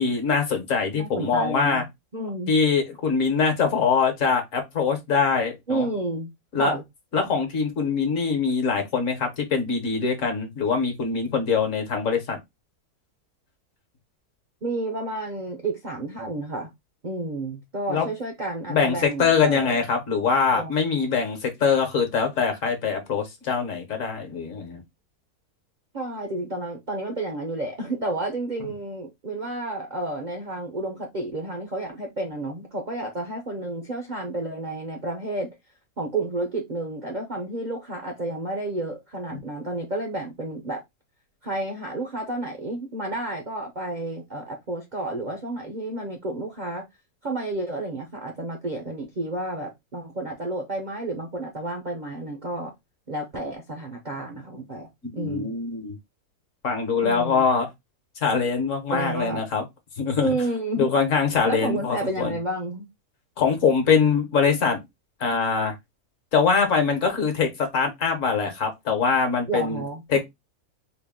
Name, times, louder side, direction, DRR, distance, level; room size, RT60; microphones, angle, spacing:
voice 1, 0.0-1.8 2.5-5.9 6.5-6.8 7.1-12.4 17.9-18.1 18.7-24.8 55.0-55.9 56.6-57.7 58.2-59.6 60.0-60.3 60.8-62.4 63.4-64.8 65.2-65.7 66.3-69.8 70.1-70.2, left 5 dB, 60° left, 1.3 m, -23 dB
voice 2, 0.9-1.8 2.1-2.5 5.7-6.3 6.6-6.8 14.6-16.7 17.0-19.8 20.5-20.7 25.9-35.5 36.0-40.8 41.4-46.9 47.2-52.7 53.1-55.5 57.0-57.5 58.9-59.4 60.2-60.9 61.5-62.9 69.5-70.2, right 2 dB, 45° right, 0.6 m, -31 dB
4.0 x 2.2 x 3.5 m
omnidirectional pair, 1.6 m